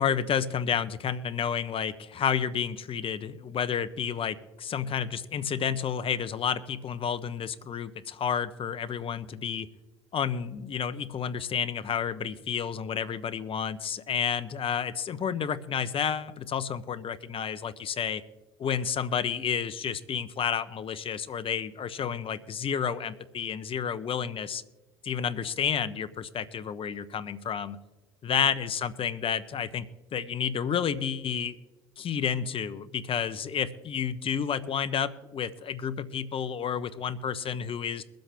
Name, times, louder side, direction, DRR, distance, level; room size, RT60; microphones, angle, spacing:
voice 1, 0.0-9.7 10.1-18.2 18.6-24.6 25.0-27.8 28.2-29.9 30.1-31.5 32.0-38.0, left 7 dB, 45° left, 14 dB, 0.9 m, -30 dB
22.0 x 7.9 x 3.4 m, 1.2 s
hypercardioid pair, 65°, 14 cm